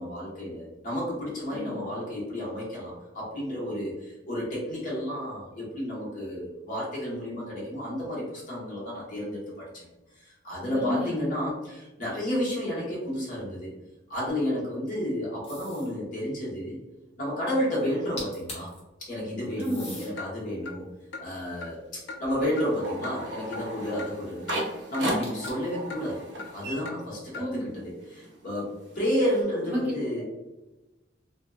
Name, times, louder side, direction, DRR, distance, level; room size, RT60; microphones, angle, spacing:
voice 1, 0.0-9.9 10.1-13.7 14.1-16.8 17.2-18.7 19.0-20.8 21.2-24.5 24.9-26.2 26.5-30.2, equal, 50° left, -6 dB, 1.2 m, -31 dB
voice 2, 10.7-11.3 19.6-19.9 27.3-27.7 29.6-29.8, equal, 10° right, -8 dB, 1.0 m, -31 dB
sound 1, 15.4-16.0 17.9-18.0 18.2-18.8 19.6-20.1 20.8-22.3 25.2-25.8, left 2 dB, 35° left, 0.8 m, -43 dB
Clock, 20.2-20.3 20.6-20.8 21.1-21.3 21.6-21.7 22.1-22.2 22.6-22.7 23.0-23.2 23.5-23.6 24.0-24.1 24.5-24.6 24.9-25.0 25.4-25.6 25.9-26.0 26.4-26.5 26.8-27.0 27.3-27.5, left 3 dB, 70° left, 0.3 m, -38 dB
sound 2, 22.4-27.6 27.9-29.4, right 1 dB, 75° right, 0.6 m, -36 dB
2.7 x 2.4 x 2.2 m, 1.0 s
head